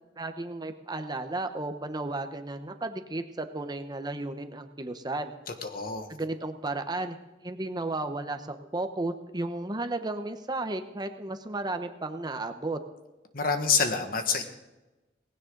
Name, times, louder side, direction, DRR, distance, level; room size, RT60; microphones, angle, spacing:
voice 1, 0.2-5.3 6.1-7.2 7.4-12.8, right 2 dB, 25° right, 7 dB, 1.0 m, -33 dB
voice 2, 5.6-6.1 13.3-14.4, left 5 dB, 55° left, 6 dB, 1.7 m, -27 dB
18.5 x 16.5 x 3.9 m, 1.1 s
head